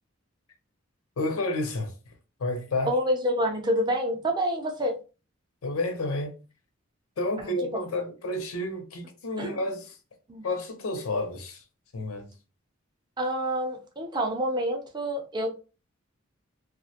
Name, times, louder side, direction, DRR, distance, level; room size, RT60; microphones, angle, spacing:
voice 1, 1.2-2.1 2.4-2.9 5.6-6.4 7.2-10.0 10.4-11.6 11.9-12.3, left 2 dB, 90° left, 0.6 m, -30 dB
voice 2, 2.8-5.0 7.4-7.8 9.4-9.6 10.3-10.5 13.2-15.6, equal, 20° right, 0.4 m, -28 dB
2.3 x 2.1 x 2.8 m
head